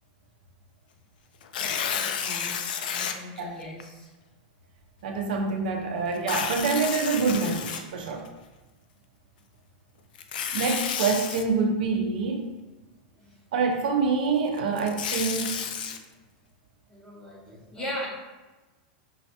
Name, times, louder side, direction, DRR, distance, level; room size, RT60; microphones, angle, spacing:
Tearing, 1.4-3.1 3.8-3.9 6.1-8.3 10.1-11.4 14.6-16.0, left 7 dB, 75° left, 0.3 m, -31 dB
voice 1, 1.9-2.6 2.9-4.1 13.2-13.3 16.9-18.1, left 1 dB, 15° left, -4 dB, 0.7 m, -38 dB
voice 2, 5.0-8.2 10.5-12.4 13.5-15.6, right 4 dB, 70° right, 2 dB, 0.5 m, -26 dB
5.5 x 2.1 x 2.8 m, 1.2 s
supercardioid pair, 165°, 5 cm